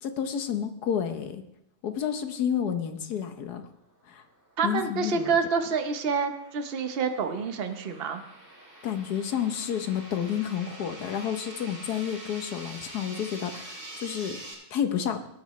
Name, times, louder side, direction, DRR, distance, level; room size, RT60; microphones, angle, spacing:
voice 1, 0.0-1.4 1.8-3.6 4.1-4.2 4.6-5.3 8.8-14.4 14.7-15.2, left 8 dB, 90° left, 8 dB, 1.5 m, -30 dB
sound 1, 4.1-14.5, right 1 dB, 75° right, 4.3 m, -46 dB
voice 2, 4.6-8.2, right 5 dB, 45° right, 7 dB, 1.0 m, -28 dB
18.0 x 9.3 x 3.1 m, 0.78 s
omnidirectional pair, 1.6 m